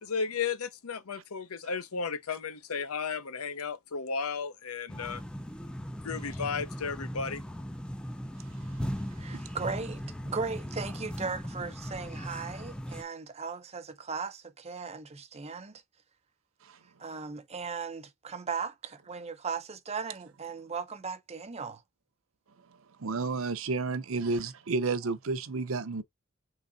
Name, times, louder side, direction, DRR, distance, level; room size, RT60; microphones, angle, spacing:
voice 1, 0.0-5.2 6.0-7.4, left 5 dB, 90° left, 0.7 m, -34 dB
sound 1, 4.9-13.0, equal, 5° left, 0.3 m, -38 dB
voice 2, 9.2-15.8 17.0-21.8, right 5 dB, 30° right, 0.6 m, -37 dB
voice 3, 23.0-26.0, right 3 dB, 65° right, 0.6 m, -31 dB
3.9 x 3.4 x 3.9 m
head